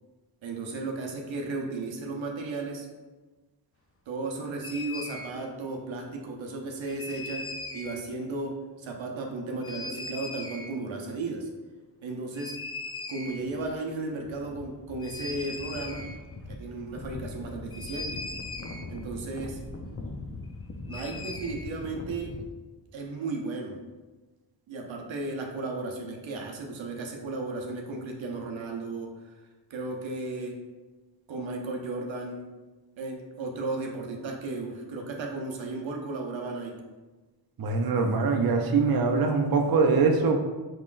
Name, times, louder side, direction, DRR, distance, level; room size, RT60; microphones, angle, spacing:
voice 1, 0.4-2.9 4.1-7.5 7.7-11.5 12.0-12.6 13.1-16.1 16.5-18.2 18.9-19.6 20.9-22.4 22.9-23.8 24.7-29.4 29.7-30.6 31.3-32.4 33.0-36.8, right 3 dB, 85° right, 1 dB, 0.7 m, -35 dB
sound 1, 4.6-5.3 6.9-8.0 9.6-10.8 12.3-13.7 13.9-14.0 14.2-22.4, left 3 dB, 30° left, 0.5 m, -39 dB
voice 2, 37.6-40.4, right 4 dB, 50° right, 3 dB, 0.6 m, -23 dB
4.9 x 3.7 x 2.5 m, 1.2 s
cardioid pair, 45°, 45 cm